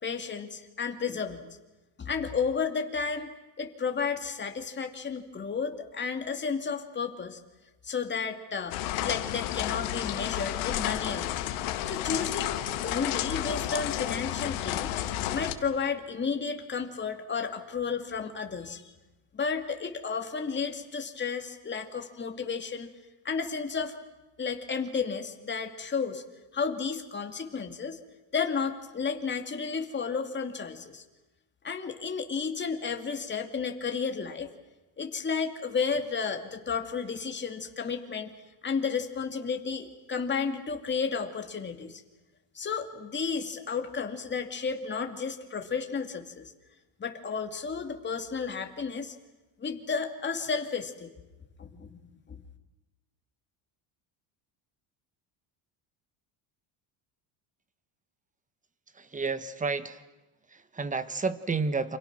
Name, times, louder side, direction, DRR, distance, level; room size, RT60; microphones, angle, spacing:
voice 1, 0.0-1.5 2.0-3.3 3.6-7.4 7.8-11.4 11.9-14.9 15.3-18.9 19.3-22.9 23.2-24.0 24.4-26.2 26.5-28.0 28.3-31.0 31.6-34.5 35.0-38.3 38.6-42.0 42.5-46.5 47.0-49.2 49.6-51.1 51.6-52.0 52.3-52.4, left 5 dB, 25° left, 5 dB, 2.5 m, -32 dB
sound 1, 8.7-15.5, left 13 dB, 85° left, 1.9 m, -31 dB
voice 2, 59.0-60.0 60.5-62.0, right 4 dB, 15° right, 13 dB, 1.3 m, -31 dB
29.0 x 27.0 x 6.2 m, 1.1 s
cardioid pair, 140°, 47 cm